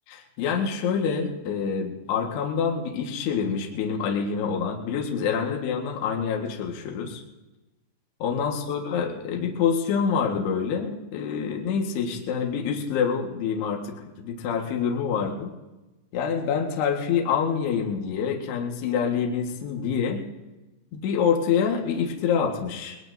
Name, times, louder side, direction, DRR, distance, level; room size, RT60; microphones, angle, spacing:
voice 1, 0.1-7.2 8.2-15.5 16.1-20.3 20.9-23.0, left 6 dB, 65° left, 1 dB, 3.1 m, -26 dB
21.5 x 20.0 x 2.6 m, 1.0 s
omnidirectional pair, 5.8 m